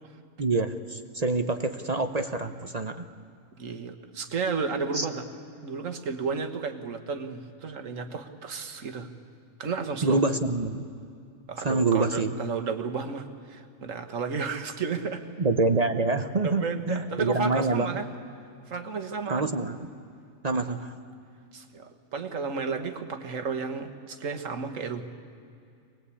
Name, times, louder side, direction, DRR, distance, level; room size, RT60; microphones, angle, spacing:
voice 1, 0.4-3.1 4.9-5.1 10.0-10.8 11.6-12.3 15.4-18.0 19.3-19.9 20.4-20.9, right 3 dB, 35° right, 8 dB, 0.7 m, -26 dB
voice 2, 3.6-5.2 5.6-9.1 9.6-10.2 11.5-15.2 16.4-18.1 18.7-19.5 20.5-20.7 21.5-25.1, right 5 dB, 60° right, 6 dB, 1.7 m, -32 dB
24.5 x 19.5 x 8.5 m, 2.3 s
omnidirectional pair, 1.5 m